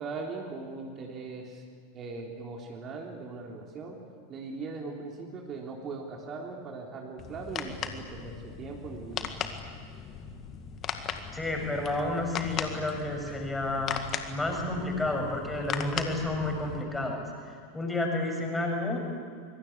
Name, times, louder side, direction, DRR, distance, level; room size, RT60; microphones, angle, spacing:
voice 1, 0.0-1.6 1.9-4.0 4.3-9.3, right 4 dB, 30° right, 0 dB, 3.6 m, -39 dB
sound 1, 7.2-16.8, left 7 dB, 35° left, 2.0 m, -38 dB
voice 2, 11.3-14.0 14.3-19.0, left 2 dB, 10° left, 1 dB, 6.8 m, -31 dB
25.0 x 23.5 x 8.4 m, 2.1 s
figure-of-eight pair, 85°, 0 cm